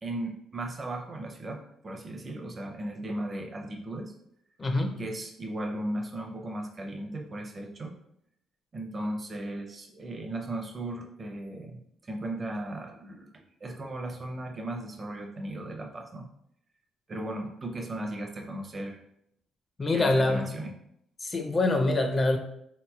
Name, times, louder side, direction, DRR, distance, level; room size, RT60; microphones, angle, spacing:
voice 1, 0.0-4.1 5.0-7.9 8.7-13.3 13.6-16.3 17.1-19.0 19.9-20.7, right 1 dB, 35° right, 3 dB, 0.6 m, -36 dB
voice 2, 4.6-5.0 19.8-20.6 21.2-22.4, left 2 dB, 30° left, 4 dB, 0.4 m, -25 dB
3.7 x 2.9 x 2.3 m, 0.74 s
cardioid pair, 90°, 0 cm